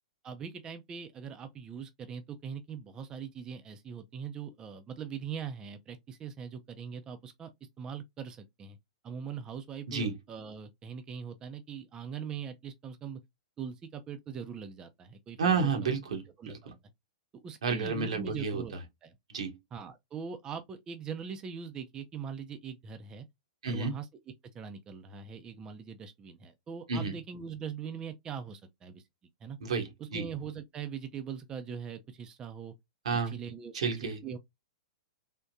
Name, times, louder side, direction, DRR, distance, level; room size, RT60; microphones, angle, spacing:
voice 1, 0.2-7.5 7.8-8.8 9.0-13.2 13.6-15.7 16.4-16.7 17.4-18.7 19.0-19.2 19.7-23.3 23.7-24.1 24.5-29.0 29.4-29.6 30.0-32.7 33.3-34.4, right 7 dB, 20° right, 0.5 m, -41 dB
voice 2, 15.4-16.7 17.6-18.6 19.3-19.6 23.6-23.9 26.9-27.1 29.6-30.3 33.0-33.3 33.7-34.2, right 5 dB, 80° right, 1.2 m, -31 dB
3.6 x 2.1 x 2.6 m
hypercardioid pair, 130°, 3 cm